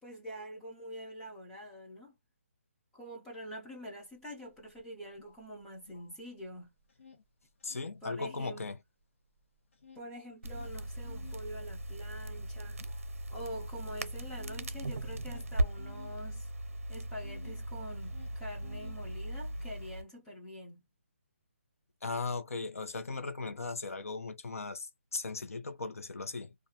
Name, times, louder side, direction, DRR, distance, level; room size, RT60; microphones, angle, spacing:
voice 1, 0.0-2.1 2.9-6.7 8.0-8.7 9.9-12.8 13.3-16.5 16.9-20.8, equal, 5° left, 0.3 m, -45 dB
sound 1, 4.1-4.2 4.5-6.5 6.8-8.6 9.0-17.6 17.9-19.5, left 6 dB, 65° left, 1.0 m, -56 dB
voice 2, 7.6-8.8 22.0-26.5, left 3 dB, 90° left, 0.7 m, -38 dB
Crackle, 10.4-20.0, right 1 dB, 80° right, 0.6 m, -38 dB
2.4 x 2.2 x 2.7 m
hypercardioid pair, 175°, 8 cm